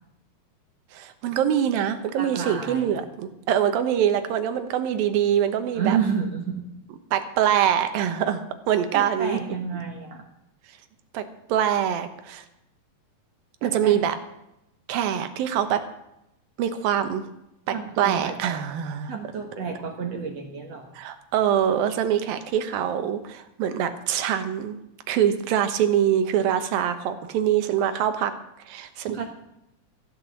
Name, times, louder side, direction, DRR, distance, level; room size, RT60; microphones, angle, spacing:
voice 1, 0.9-6.0 7.1-9.4 11.1-11.2 11.5-12.4 13.6-14.1 14.9-15.8 16.6-17.2 18.0-19.1 21.0-24.8 25.1-28.3 28.7-29.3, right 9 dB, 80° right, 9 dB, 2.8 m, -24 dB
voice 2, 2.1-3.0 5.7-6.6 8.9-10.2 13.6-14.0 17.7-18.4 19.0-20.9 29.1-29.3, right 6 dB, 55° right, 2 dB, 2.0 m, -30 dB
15.0 x 9.0 x 7.3 m, 0.84 s
omnidirectional pair, 4.3 m